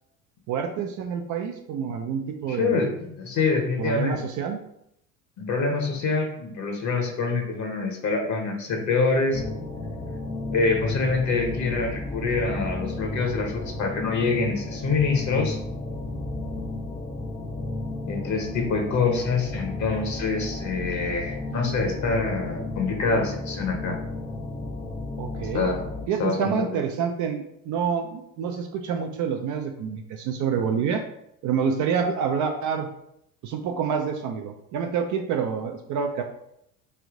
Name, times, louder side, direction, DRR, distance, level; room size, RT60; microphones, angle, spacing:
voice 1, 0.5-2.9 3.8-4.6 25.2-25.7 26.1-31.0 31.4-32.9 33.4-36.2, right 7 dB, 45° right, 4 dB, 0.5 m, -27 dB
voice 2, 2.5-4.2 5.4-9.4 10.5-15.6 18.1-24.0 25.4-25.9 26.2-26.8, left 4 dB, 40° left, 2 dB, 1.0 m, -26 dB
sound 1, 9.3-26.1, left 2 dB, 10° left, 0.4 m, -33 dB
3.3 x 2.6 x 3.7 m, 0.76 s
hypercardioid pair, 70°, 44 cm